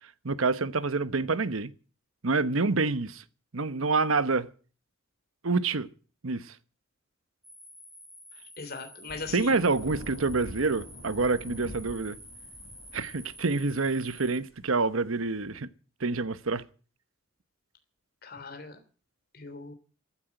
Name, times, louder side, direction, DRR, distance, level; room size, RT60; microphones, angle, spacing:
voice 1, 0.2-1.7 2.2-3.2 3.5-4.5 5.4-5.9 6.2-6.5 9.3-12.2 12.9-15.7 16.0-16.6, right 3 dB, 80° right, 1.0 m, -27 dB
sound 1, 7.4-14.4, equal, ahead, 4.7 m, -49 dB
voice 2, 8.6-9.6 18.2-18.8 19.3-19.7, left 3 dB, 45° left, 3.2 m, -39 dB
Thunder / Rain, 9.1-15.4, left 1 dB, 75° left, 7.5 m, -46 dB
14.5 x 10.0 x 9.0 m
head